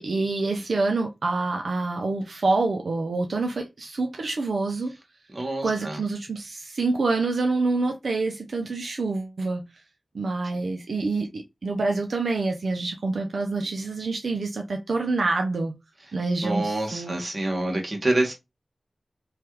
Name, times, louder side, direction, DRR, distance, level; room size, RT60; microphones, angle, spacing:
voice 1, 0.0-4.9 5.6-9.6 10.1-15.7 16.1-17.2, right 3 dB, 85° right, 0.4 m, -26 dB
voice 2, 5.3-6.0 16.4-18.3, right 1 dB, 40° right, 1.1 m, -27 dB
3.2 x 2.3 x 2.8 m
wide cardioid pair, 80°, 0 cm